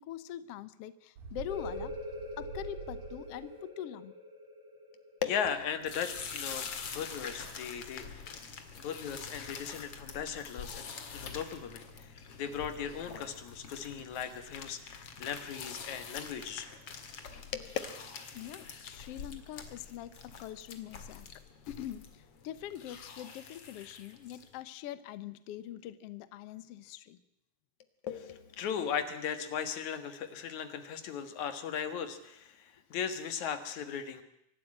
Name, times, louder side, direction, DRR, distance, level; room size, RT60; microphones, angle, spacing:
voice 1, 0.0-1.9 2.4-4.2 18.3-21.3 21.7-27.2, left 12 dB, 80° left, 15 dB, 1.3 m, -43 dB
Bird, 1.2-3.6, right 5 dB, 75° right, 4.5 m, -45 dB
sound 1, 1.5-6.8, left 1 dB, ahead, 4.5 m, -45 dB
voice 2, 5.2-8.3 8.8-16.7 17.5-17.8 28.0-34.2, left 8 dB, 65° left, 10 dB, 2.8 m, -37 dB
sound 2, 5.8-24.5, left 6 dB, 45° left, 2.7 m, -45 dB
25.0 x 12.0 x 9.9 m, 0.83 s
omnidirectional pair, 3.9 m